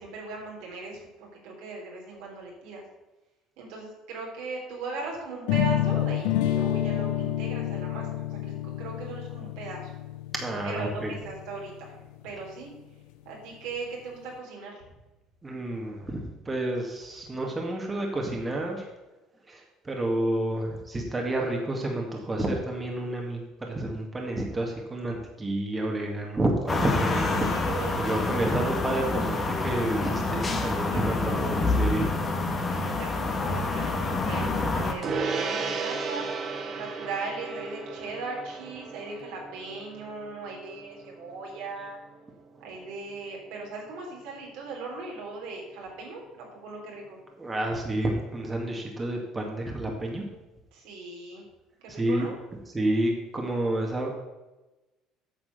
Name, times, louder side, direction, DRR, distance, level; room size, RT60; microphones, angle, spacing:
voice 1, 0.0-2.8 3.6-9.9 10.6-12.0 12.2-12.7 13.2-14.8 26.9-29.0 30.6-31.7 32.6-36.3 36.7-42.0 42.6-47.2 50.7-51.5 51.8-52.3, right 3 dB, 80° right, -1 dB, 3.5 m, -39 dB
sound 1, 5.5-11.4, left 12 dB, 80° left, 0.7 m, -28 dB
voice 2, 10.3-11.1 15.4-18.8 19.5-27.5 27.9-32.1 47.4-50.2 51.9-52.3 52.7-54.1, right 1 dB, 20° right, 0 dB, 2.1 m, -30 dB
sound 2, 26.7-34.9, left 2 dB, 30° left, 1.8 m, -27 dB
Gong, 35.0-44.7, right 4 dB, 45° right, 1.6 m, -36 dB
9.0 x 6.0 x 6.7 m, 1.1 s
supercardioid pair, 85°, 0 cm